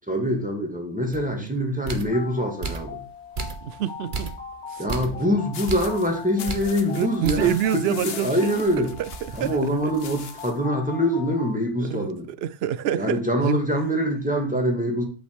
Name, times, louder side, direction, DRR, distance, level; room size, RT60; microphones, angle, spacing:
voice 1, 0.1-3.0 4.8-8.9 9.3-12.3 12.9-15.0, equal, 5° right, 2.4 m, -24 dB
sound 1, 1.1-1.3 1.9-2.2 2.6-3.0 3.4-3.8 4.1-4.5 4.9-5.2 5.7-6.0 6.5-6.7 7.2-7.6 8.0-8.1 8.5-10.0, right 4 dB, 45° right, 1.2 m, -33 dB
sound 2, 2.1-11.5, left 5 dB, 90° left, 2.9 m, -40 dB
voice 2, 3.6-4.4 4.7-4.8 6.9-8.6 9.0-9.1 9.4-9.9 11.8-13.6, right 10 dB, 65° right, 0.8 m, -27 dB
sound 3, 5.5-10.6, left 7 dB, 60° left, 1.1 m, -41 dB
8.4 x 6.2 x 6.2 m
omnidirectional pair, 1.2 m